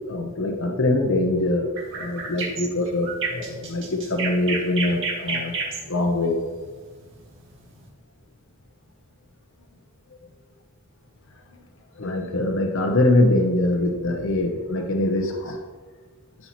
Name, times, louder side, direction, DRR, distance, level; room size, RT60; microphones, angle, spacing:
voice 1, 0.1-1.7 1.9-5.5 5.9-6.4 12.0-15.6, left 1 dB, 60° left, 3 dB, 0.8 m, -23 dB
sound 1, 1.8-7.8, right 4 dB, 60° right, 2.1 m, -31 dB
13.0 x 5.4 x 3.0 m, 1.4 s
head